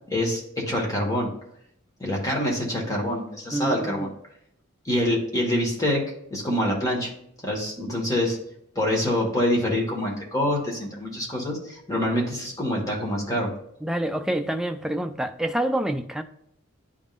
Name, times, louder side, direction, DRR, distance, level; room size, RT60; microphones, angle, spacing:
voice 1, 0.1-1.3 2.0-4.1 4.8-6.0 6.3-7.1 7.4-8.4 8.7-13.5, left 1 dB, 15° left, 1.5 m, -25 dB
voice 2, 3.5-4.1 13.8-16.2, right 1 dB, ahead, 0.3 m, -27 dB
10.5 x 3.6 x 2.5 m
head